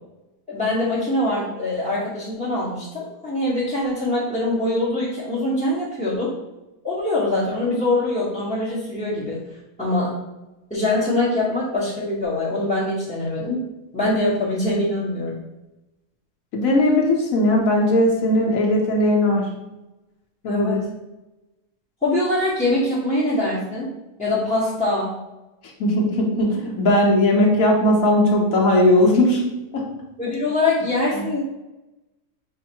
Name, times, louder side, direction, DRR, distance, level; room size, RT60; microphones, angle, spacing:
voice 1, 0.5-6.3 6.8-9.4 9.8-10.1 10.7-13.6 13.9-15.4 20.5-20.8 22.0-23.9 24.2-25.1 30.2-31.4, left 2 dB, 5° left, -10 dB, 0.9 m, -23 dB
voice 2, 16.5-19.6 20.4-20.8 25.8-29.4 29.7-29.9 31.2-31.3, left 1 dB, 60° left, -1 dB, 1.3 m, -18 dB
5.5 x 2.1 x 4.4 m, 1.0 s
omnidirectional pair, 1.7 m